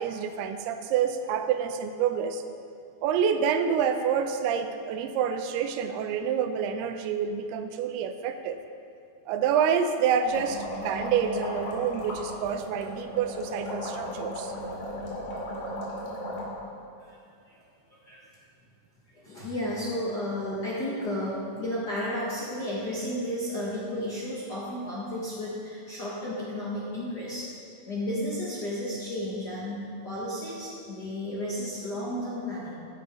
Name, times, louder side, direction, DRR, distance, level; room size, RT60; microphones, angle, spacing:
voice 1, 0.0-2.5 3.0-8.6 9.3-14.5, right 7 dB, 85° right, 8 dB, 2.6 m, -27 dB
sound 1, 10.3-16.5, equal, 80° left, 4.2 m, -36 dB
voice 2, 19.1-27.5 27.8-32.8, left 1 dB, 60° left, -7 dB, 1.0 m, -33 dB
14.5 x 7.6 x 5.2 m, 2.4 s
omnidirectional pair, 4.6 m